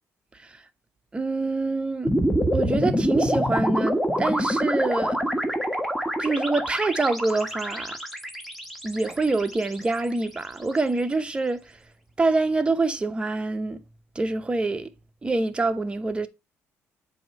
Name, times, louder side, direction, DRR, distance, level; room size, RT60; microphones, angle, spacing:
voice 1, 0.3-0.6 1.1-2.1 2.5-5.2 6.2-8.0 8.8-11.8 12.2-13.8 14.1-14.9 15.2-16.3, right 3 dB, 20° right, 0.8 m, -26 dB
sound 1, 2.0-10.3, equal, ahead, 1.2 m, -26 dB
7.7 x 2.8 x 5.3 m
cardioid pair, 100°, 6 cm